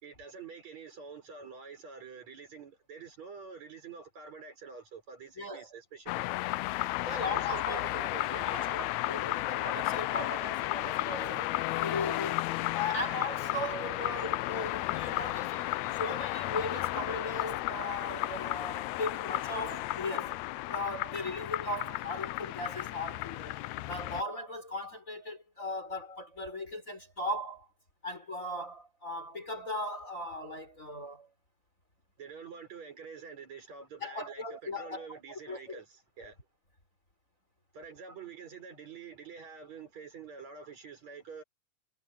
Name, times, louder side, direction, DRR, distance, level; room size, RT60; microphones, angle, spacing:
voice 1, 0.0-6.2 7.0-8.7 23.6-23.7 32.2-36.4 37.7-41.4, right 6 dB, 55° right, 6.7 m, -47 dB
voice 2, 5.4-5.7 7.1-12.5 12.7-20.4 20.7-23.6 23.9-27.7 28.0-31.3 34.0-35.8, left 1 dB, 20° left, 4.8 m, -38 dB
sound 1, 6.1-24.2, left 17 dB, 90° left, 1.6 m, -33 dB
omnidirectional pair, 3.8 m